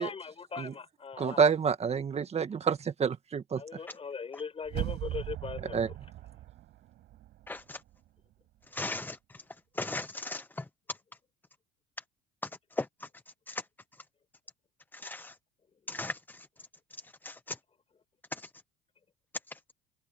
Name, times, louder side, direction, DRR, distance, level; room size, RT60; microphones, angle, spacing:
voice 1, 0.0-1.4 3.6-5.9, left 5 dB, 30° left, 5.8 m, -40 dB
voice 2, 1.2-3.6 5.7-5.9, right 6 dB, 35° right, 1.8 m, -28 dB
sound 1, 4.7-7.6 7.9-8.0, right 14 dB, 60° right, 8.0 m, -39 dB
voice 3, 7.5-7.8 8.7-9.2 9.8-10.4 12.8-12.9 13.5-13.6 15.0-15.3 15.9-16.1 17.2-17.3, left 2 dB, 10° left, 0.8 m, -36 dB
supercardioid pair, 80°, 19 cm